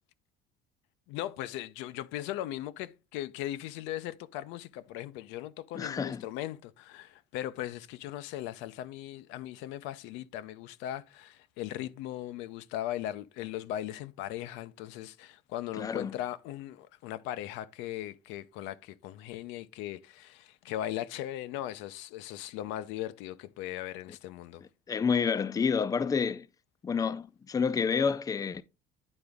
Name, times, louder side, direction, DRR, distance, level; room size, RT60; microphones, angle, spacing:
voice 1, 1.1-24.6, left 13 dB, 85° left, 0.5 m, -38 dB
voice 2, 5.7-6.2 15.8-16.1 24.9-26.5 26.8-28.6, left 6 dB, 20° left, 0.4 m, -29 dB
9.8 x 3.9 x 3.5 m
cardioid pair, 115°, 19 cm